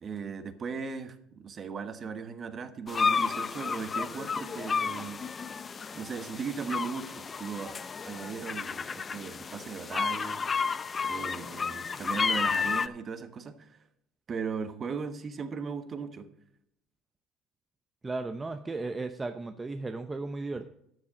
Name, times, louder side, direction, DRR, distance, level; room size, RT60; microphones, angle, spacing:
voice 1, 0.0-5.2 5.9-7.8 8.0-10.5 11.0-13.8 14.3-16.3, right 5 dB, 35° right, 10 dB, 1.2 m, -37 dB
sound 1, 2.9-12.9, left 5 dB, 25° left, 0.5 m, -32 dB
voice 2, 18.0-20.7, right 3 dB, 15° right, 8 dB, 0.6 m, -35 dB
12.5 x 7.2 x 5.1 m, 0.75 s
cardioid pair, 115°, 0 cm